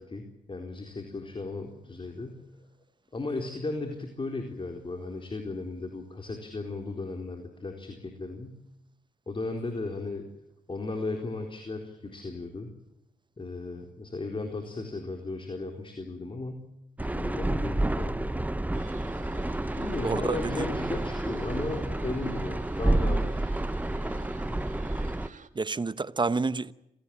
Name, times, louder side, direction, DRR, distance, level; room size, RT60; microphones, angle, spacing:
voice 1, 0.0-2.5 3.1-8.6 9.3-10.3 10.7-12.7 13.4-16.7 17.1-18.3 19.8-23.5, left 3 dB, 35° left, 4.2 m, -36 dB
sound 1, 17.0-25.3, right 1 dB, 10° right, 1.0 m, -29 dB
sound 2, 18.7-25.5, right 6 dB, 55° right, 1.8 m, -50 dB
voice 2, 20.0-20.7 25.5-26.7, right 3 dB, 30° right, 1.0 m, -29 dB
26.5 x 18.5 x 8.8 m
cardioid pair, 60°, 15 cm